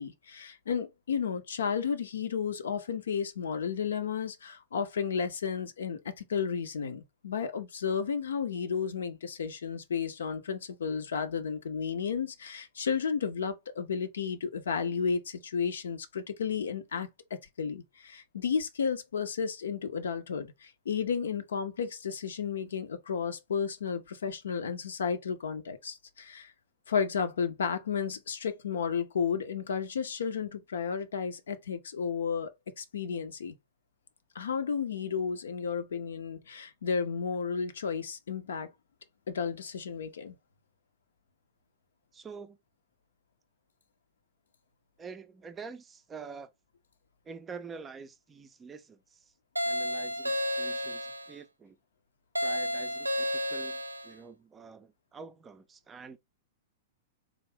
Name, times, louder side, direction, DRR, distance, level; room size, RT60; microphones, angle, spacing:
voice 1, 0.0-26.5 26.9-32.5 32.8-33.5 34.3-38.7 39.3-40.3, left 6 dB, 65° left, 0.6 m, -33 dB
voice 2, 42.1-42.6 45.0-46.5 47.2-49.3 49.6-51.8 52.4-56.2, right 5 dB, 20° right, 0.4 m, -46 dB
sound 1, 49.6-51.3 52.4-54.1, equal, 85° right, 0.4 m, -32 dB
3.6 x 2.6 x 3.2 m
figure-of-eight pair, 100°, 0 cm